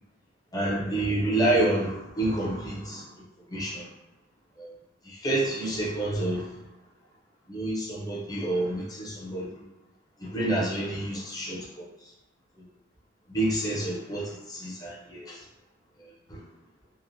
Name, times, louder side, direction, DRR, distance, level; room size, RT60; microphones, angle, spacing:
voice 1, 0.5-3.0 3.5-3.9 4.6-4.7 5.1-6.4 7.5-9.5 10.2-11.9 13.3-15.4 16.3-16.4, right 1 dB, 20° left, -4 dB, 0.6 m, -28 dB
2.9 x 2.0 x 2.6 m, 0.92 s
head